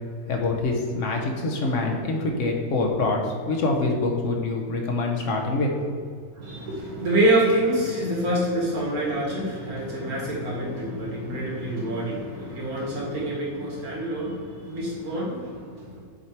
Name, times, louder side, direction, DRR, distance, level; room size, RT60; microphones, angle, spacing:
voice 1, 0.3-5.7, left 3 dB, 60° left, 1 dB, 1.1 m, -25 dB
voice 2, 6.4-16.0, right 1 dB, 75° right, -5 dB, 2.4 m, -26 dB
6.7 x 4.3 x 4.6 m, 2.1 s
omnidirectional pair, 1.6 m